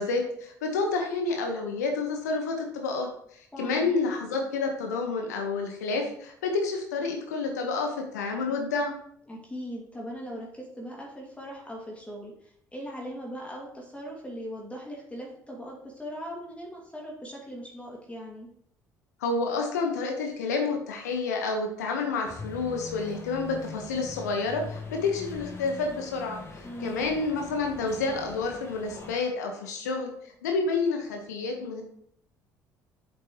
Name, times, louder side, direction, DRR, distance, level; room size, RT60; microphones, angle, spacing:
voice 1, 0.0-3.1 3.6-8.9 19.2-30.1 30.4-31.8, left 3 dB, 75° left, 3 dB, 1.3 m, -29 dB
voice 2, 3.5-4.0 9.3-18.5 26.6-27.1, equal, 15° left, -2 dB, 2.3 m, -40 dB
sound 1, 22.2-29.1, left 4 dB, 30° left, 2.6 m, -42 dB
8.3 x 7.6 x 3.1 m, 0.67 s
figure-of-eight pair, 55°, 9 cm